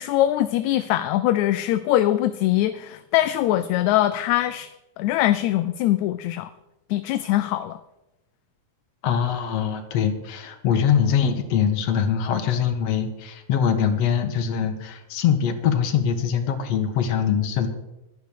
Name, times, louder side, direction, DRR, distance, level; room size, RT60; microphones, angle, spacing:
voice 1, 0.0-4.7 5.0-6.5 6.9-7.8, left 13 dB, 80° left, 12 dB, 1.8 m, -22 dB
voice 2, 9.0-17.7, left 8 dB, 60° left, 6 dB, 2.3 m, -23 dB
11.5 x 10.5 x 6.5 m, 0.96 s
omnidirectional pair, 3.5 m